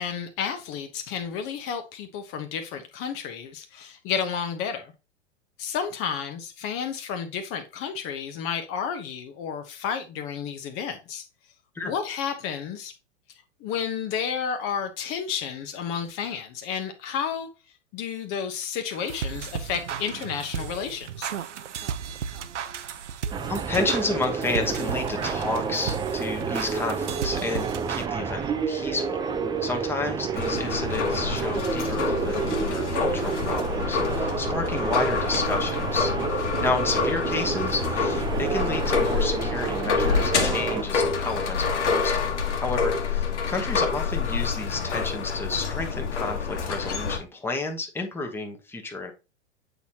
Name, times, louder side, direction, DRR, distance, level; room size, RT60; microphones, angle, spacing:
voice 1, 0.0-4.9 5.6-11.2 11.8-12.9 13.6-17.5 17.9-21.3, left 7 dB, 40° left, 0.9 m, -31 dB
sound 1, 18.9-28.1, right 7 dB, 85° right, 0.7 m, -35 dB
sound 2, 23.3-40.8, right 5 dB, 10° right, 0.5 m, -29 dB
voice 2, 23.5-29.2 29.6-42.3 42.6-49.1, left 3 dB, 5° left, 1.0 m, -31 dB
sound 3, 30.3-47.2, left 5 dB, 80° left, 1.5 m, -27 dB
8.1 x 4.2 x 2.9 m
hypercardioid pair, 105°, 35 cm